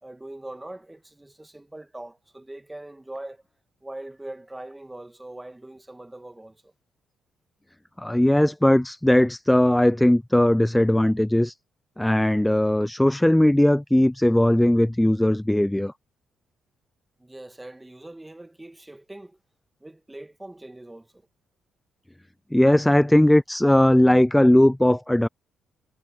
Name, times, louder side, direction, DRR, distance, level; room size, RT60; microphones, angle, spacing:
voice 1, 0.0-3.4 3.8-6.7 17.2-19.4 19.8-21.3, right 1 dB, 10° right, 1.6 m, -41 dB
voice 2, 8.0-11.5 12.0-15.9 22.5-25.3, left 1 dB, 5° left, 0.3 m, -19 dB
cardioid pair, 90°, 0 cm